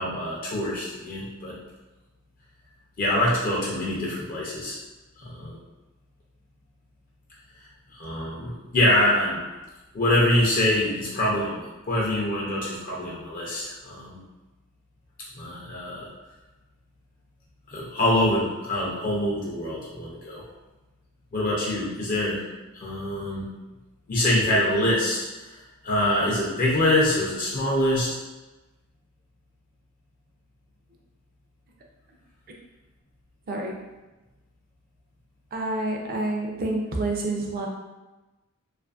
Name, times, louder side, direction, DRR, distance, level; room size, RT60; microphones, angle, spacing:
voice 1, 0.0-1.6 3.0-4.8 5.2-5.6 7.9-9.4 9.9-14.2 15.3-16.1 17.7-20.4 21.3-22.4 22.7-23.5 24.1-25.5 25.8-28.2, left 1 dB, 40° left, -5 dB, 0.5 m, -25 dB
voice 2, 35.5-37.7, right 2 dB, 45° right, 0 dB, 0.4 m, -28 dB
2.5 x 2.5 x 2.4 m, 1.1 s
head